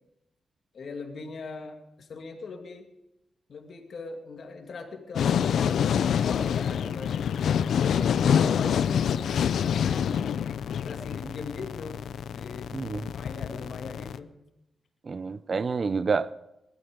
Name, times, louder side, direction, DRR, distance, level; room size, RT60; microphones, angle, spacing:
voice 1, 0.7-2.9 3.5-5.9 6.2-7.3 7.7-9.2 9.6-10.2 10.8-12.7 13.1-14.4, left 4 dB, 60° left, 2.4 m, -40 dB
sound 1, 5.1-14.2, left 8 dB, 85° left, 0.5 m, -26 dB
voice 2, 12.7-13.1 15.0-16.3, right 5 dB, 40° right, 0.6 m, -28 dB
19.0 x 12.5 x 5.2 m
wide cardioid pair, 115°, 0 cm